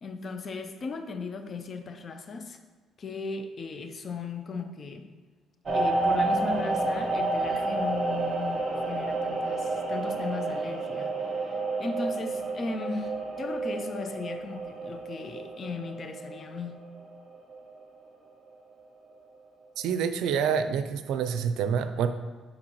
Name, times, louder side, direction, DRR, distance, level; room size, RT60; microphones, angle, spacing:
voice 1, 0.0-2.6 3.0-5.1 5.7-11.2 11.4-16.9, left 4 dB, 45° left, 7 dB, 0.6 m, -37 dB
sound 1, 5.7-17.0 17.3-17.7, right 2 dB, 45° right, 1.0 m, -30 dB
voice 2, 19.8-22.1, right 7 dB, 80° right, 10 dB, 0.4 m, -27 dB
8.9 x 4.2 x 3.1 m, 1.4 s
cardioid pair, 90°, 0 cm